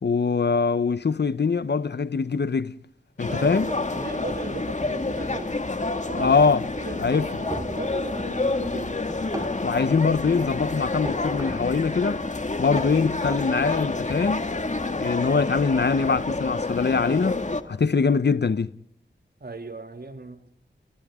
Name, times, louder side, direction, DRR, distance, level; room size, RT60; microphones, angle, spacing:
voice 1, 0.0-2.8 3.2-3.7 6.2-6.7 7.0-7.3 9.6-12.2 12.6-14.5 15.0-18.7, left 5 dB, 60° left, 1.0 m, -23 dB
sound 1, 3.2-17.6, left 2 dB, 40° left, 2.1 m, -29 dB
voice 2, 3.2-9.0 19.4-20.5, right 3 dB, 55° right, 2.6 m, -38 dB
sound 2, 7.5-8.0 9.1-9.7 11.0-11.7 12.8-13.5, right 1 dB, 15° right, 4.3 m, -37 dB
29.5 x 28.5 x 3.7 m
wide cardioid pair, 60°, 19 cm